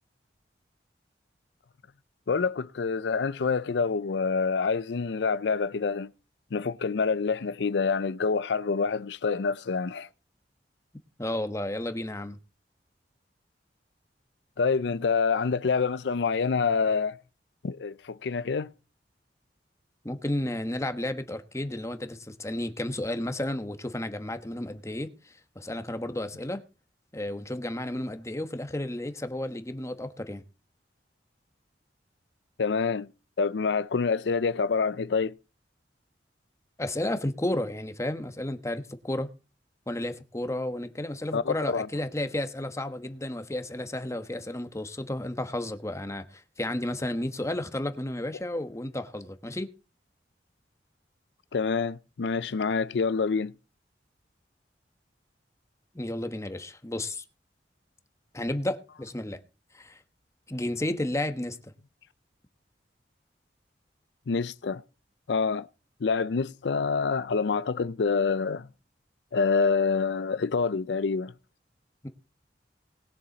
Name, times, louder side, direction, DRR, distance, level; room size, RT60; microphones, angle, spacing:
voice 1, 2.3-6.1 6.5-10.1 14.6-17.2 17.6-18.7 32.6-33.1 33.4-35.3 41.3-41.9 51.5-53.5 64.3-64.8 65.3-65.7 66.0-68.7 69.3-71.3, left 5 dB, 80° left, 0.5 m, -27 dB
voice 2, 11.2-12.4 20.0-26.6 27.1-30.4 36.8-39.3 39.9-49.7 55.9-57.2 58.3-59.4 59.7-60.0 60.5-61.7 72.0-72.1, left 1 dB, 15° left, 1.1 m, -32 dB
20.0 x 7.1 x 4.0 m
head